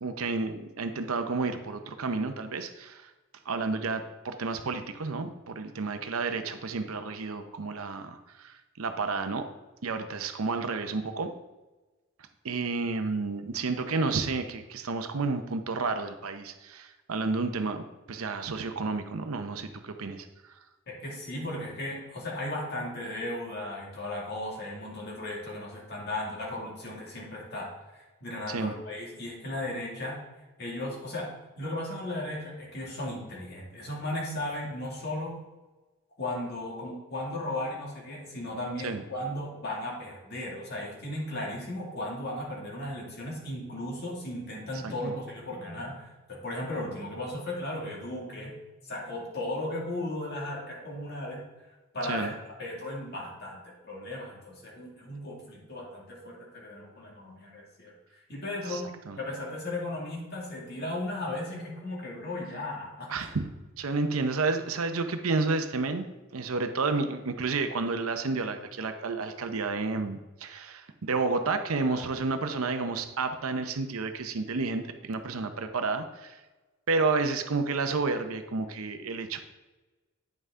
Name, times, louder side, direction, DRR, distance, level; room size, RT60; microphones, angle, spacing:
voice 1, 0.0-3.1 3.5-9.5 9.8-11.3 12.4-20.6 28.5-28.7 38.8-39.0 44.8-44.9 52.0-52.3 58.7-59.2 63.1-63.5 63.8-66.0 66.3-76.4 76.9-79.4, right 3 dB, 85° right, 8 dB, 0.7 m, -31 dB
voice 2, 20.9-30.2 30.6-31.3 31.6-35.3 36.2-48.6 48.9-51.4 51.9-52.3 52.6-58.9 59.2-63.1 71.9-72.0, left 1 dB, 50° left, -3 dB, 2.2 m, -36 dB
9.3 x 5.5 x 3.7 m, 1.1 s
head